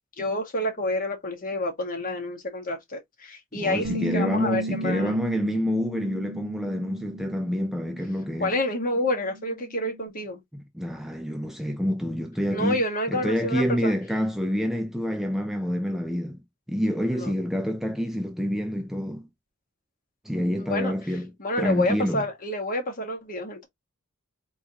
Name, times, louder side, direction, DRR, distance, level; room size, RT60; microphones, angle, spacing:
voice 1, 0.2-5.1 8.4-10.4 12.5-13.9 17.1-17.3 20.6-20.9 21.4-23.7, left 1 dB, 40° left, 1.5 m, -28 dB
voice 2, 3.5-8.5 10.5-12.8 13.1-16.4 16.7-19.3 20.2-21.3 21.6-22.2, equal, ahead, 0.4 m, -27 dB
Bass guitar, 3.8-10.1, right 1 dB, 90° right, 0.7 m, -36 dB
3.9 x 3.8 x 2.8 m
head